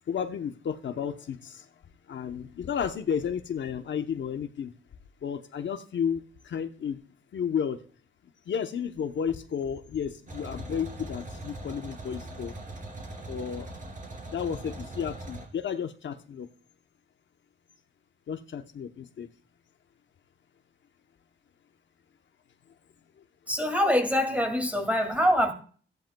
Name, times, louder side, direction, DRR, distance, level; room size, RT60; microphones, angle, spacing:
voice 1, 0.1-1.6 2.1-4.7 5.2-7.0 7.3-7.8 8.5-12.5 13.3-13.7 14.3-16.5 18.3-19.3, left 7 dB, 70° left, 7 dB, 0.9 m, -32 dB
sound 1, 10.3-15.5, right 2 dB, 40° right, 3.1 m, -41 dB
voice 2, 23.5-25.5, equal, 5° right, 5 dB, 2.3 m, -24 dB
15.5 x 10.5 x 2.3 m, 0.43 s
cardioid pair, 105°, 20 cm